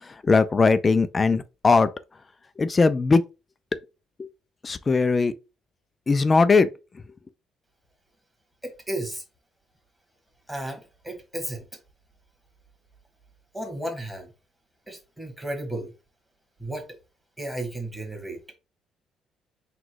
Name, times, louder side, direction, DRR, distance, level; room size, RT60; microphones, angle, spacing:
voice 1, 0.0-1.9 2.6-3.2 4.2-4.3 4.6-5.3 6.1-6.7, left 4 dB, 30° left, 0.4 m, -20 dB
voice 2, 8.6-9.2 10.5-11.6 13.5-14.3 14.9-15.9 16.6-16.8 17.4-18.4, right 1 dB, 10° right, 1.5 m, -33 dB
4.0 x 2.3 x 4.5 m
cardioid pair, 90°, 0 cm